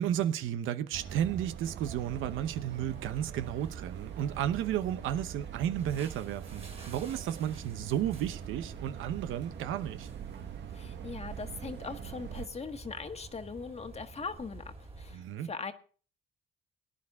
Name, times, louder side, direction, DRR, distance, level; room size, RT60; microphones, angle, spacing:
voice 1, 0.0-10.1 15.1-15.5, right 10 dB, 85° right, 0.9 m, -33 dB
sound 1, 0.9-12.5, right 10 dB, 65° right, 1.1 m, -43 dB
sound 2, 1.8-15.2, right 3 dB, 30° right, 2.9 m, -49 dB
voice 2, 10.7-15.7, left 5 dB, 30° left, 1.5 m, -40 dB
18.0 x 10.0 x 3.6 m
cardioid pair, 90°, 20 cm